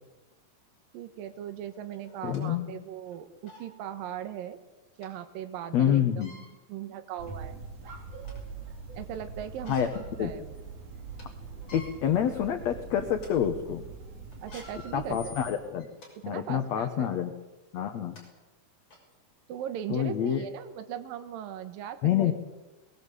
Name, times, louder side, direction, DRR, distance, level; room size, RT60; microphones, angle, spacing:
voice 1, 0.9-4.6 5.0-7.6 9.0-9.9 10.2-10.5 14.4-15.2 16.3-17.1 19.5-22.3, right 10 dB, 75° right, 8 dB, 2.9 m, -39 dB
sound 1, 1.3-1.4 2.0-2.5 3.1-3.2 3.5-3.7 5.0-5.1 6.1-6.5 7.2-7.3 7.8-8.5 9.5-10.1 10.5-10.6 11.0-11.2 11.6-11.9 12.5-12.7 13.1-13.3 14.3-16.1 16.7-16.9 17.8-17.9 18.2-18.3 18.9-19.0, left 2 dB, 40° left, 7.0 m, -50 dB
voice 2, 2.2-2.7 5.7-6.3 9.7-9.9 10.2-10.3 11.7-13.9 14.9-15.9 16.2-17.3 17.7-18.2 19.9-20.5 22.0-22.3, left 10 dB, 60° left, 7 dB, 2.0 m, -27 dB
sound 2, 7.2-15.5, right 5 dB, 55° right, 4.8 m, -43 dB
22.0 x 20.0 x 8.3 m, 1.1 s
omnidirectional pair, 4.3 m